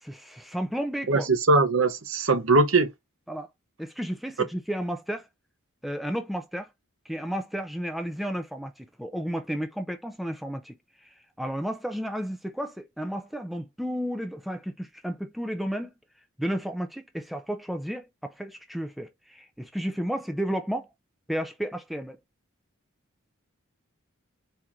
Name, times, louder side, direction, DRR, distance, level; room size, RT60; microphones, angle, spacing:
voice 1, 0.0-1.3 3.3-3.5 3.8-5.3 5.8-6.7 7.1-15.9 16.4-20.9 21.3-22.2, equal, ahead, 0.3 m, -32 dB
voice 2, 1.1-2.9, right 3 dB, 65° right, 0.8 m, -21 dB
4.4 x 2.5 x 3.6 m
head